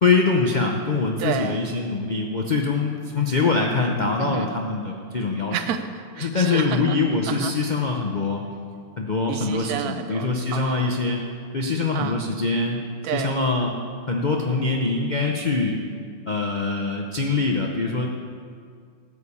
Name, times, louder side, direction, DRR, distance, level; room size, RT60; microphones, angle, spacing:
voice 1, 0.0-5.5 6.2-8.4 9.0-11.2 11.5-12.8 13.1-13.8 14.1-15.8 16.3-18.1, left 4 dB, 75° left, 1 dB, 0.4 m, -23 dB
voice 2, 1.2-1.6 4.2-4.5 5.5-7.0 7.2-7.5 9.3-11.0 11.9-12.2 13.0-13.4, right 8 dB, 65° right, 9 dB, 1.1 m, -30 dB
14.0 x 5.0 x 8.4 m, 2.2 s
omnidirectional pair, 2.0 m